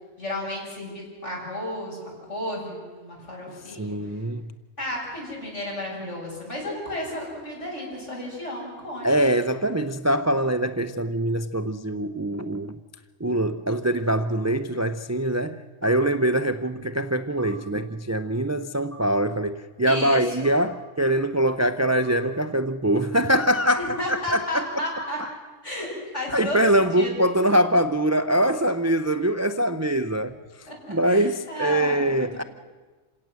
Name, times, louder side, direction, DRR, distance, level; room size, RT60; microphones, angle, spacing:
voice 1, 0.2-3.9 4.8-9.3 19.8-20.5 23.8-25.2 25.6-25.9 26.1-27.1 30.7-32.5, left 1 dB, 65° left, -3 dB, 7.6 m, -33 dB
voice 2, 3.7-4.4 9.0-12.8 13.2-24.8 26.3-30.3 30.9-32.4, right 1 dB, 20° right, 10 dB, 0.4 m, -23 dB
sound 1, 15.8-16.0 17.4-17.5 18.9-19.1 20.4-20.6 22.0-22.1 23.5-23.7 25.0-25.2 26.8-26.9 28.3-28.4, right 1 dB, 30° left, 6.3 m, -44 dB
27.5 x 17.5 x 7.7 m, 1.4 s
omnidirectional pair, 1.3 m